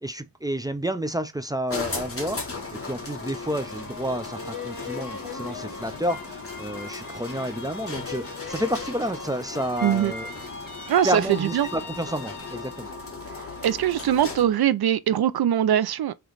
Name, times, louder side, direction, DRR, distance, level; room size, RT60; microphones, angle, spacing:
voice 1, 0.0-2.5 2.8-10.3 11.0-12.9, equal, 10° right, 0.4 m, -30 dB
sound 1, 1.7-14.6, left 3 dB, 35° left, 1.3 m, -37 dB
sound 2, 3.2-13.0 13.5-14.1, left 3 dB, 60° left, 1.3 m, -40 dB
voice 2, 9.8-10.1 10.9-11.7 13.6-16.1, right 10 dB, 80° right, 0.5 m, -22 dB
3.2 x 3.0 x 3.9 m
wide cardioid pair, 75°, 37 cm